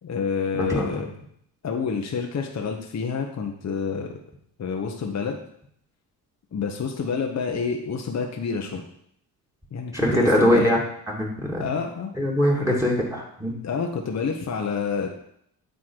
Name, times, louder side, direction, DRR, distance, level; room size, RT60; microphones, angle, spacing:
voice 1, 0.0-1.1 1.6-4.2 4.6-5.4 6.5-8.8 9.7-10.7 11.6-12.1 13.6-15.1, left 5 dB, 35° left, 2 dB, 1.1 m, -28 dB
voice 2, 0.6-1.0 9.9-10.8 11.1-11.7 12.2-13.6, equal, 5° right, -1 dB, 2.3 m, -22 dB
8.9 x 3.6 x 4.6 m, 0.70 s
hypercardioid pair, 50°, 47 cm